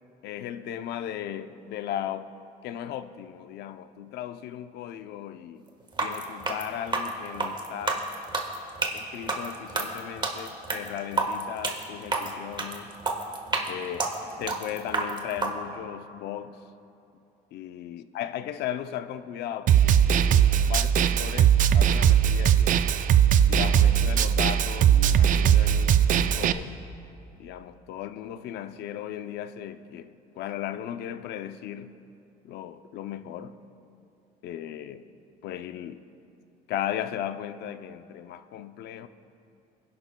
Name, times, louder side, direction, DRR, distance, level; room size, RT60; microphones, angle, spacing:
voice 1, 0.2-2.3 2.6-5.6 6.0-8.1 8.9-12.9 13.6-14.1 14.4-16.6 17.5-22.8 23.4-26.7 27.4-31.9 32.4-33.5 34.4-35.0 35.4-36.0 36.7-39.1, left 10 dB, 75° left, 0.6 m, -36 dB
sound 1, 5.9-15.5, right 3 dB, 25° right, 1.4 m, -30 dB
Snare drum, 19.7-26.5, right 9 dB, 50° right, 0.4 m, -20 dB
26.0 x 11.0 x 2.2 m
cardioid pair, 110°, 17 cm